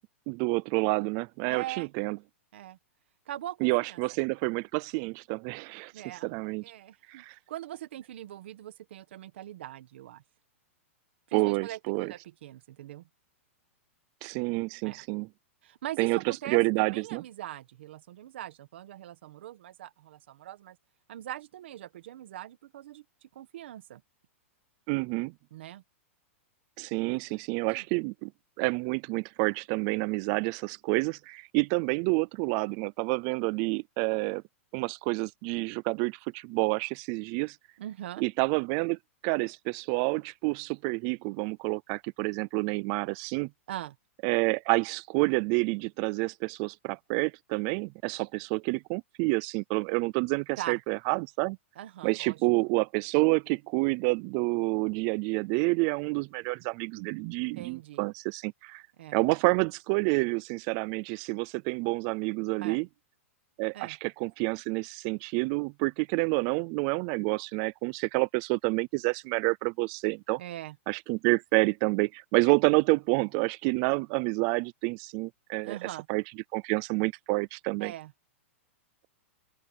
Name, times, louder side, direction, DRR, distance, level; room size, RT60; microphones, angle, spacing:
voice 1, 0.3-2.2 3.6-5.9 6.2-6.6 7.1-7.3 11.3-12.1 14.2-15.3 16.0-17.2 24.9-25.3 26.8-28.3 28.6-34.4 34.7-37.6 38.2-43.5 44.2-51.6 52.0-58.8 59.1-62.9 63.6-70.4 70.9-75.8 76.1-76.2 76.5-77.9, right 28 dB, 25° right, 0.3 m, -28 dB
voice 2, 1.5-1.9 2.5-2.8 3.3-4.0 5.9-10.2 11.3-13.1 14.8-15.0 15.6-20.8 21.1-24.0 25.5-25.8 27.3-27.4 27.7-27.8 37.8-38.2 43.7-44.0 50.6-50.8 51.7-52.4 57.5-58.0 59.0-59.2 62.6-62.8 63.7-64.0 70.4-70.8 75.6-76.1 77.8-78.1, right 13 dB, 55° right, 1.4 m, -42 dB
open air
supercardioid pair, 175°, 7 cm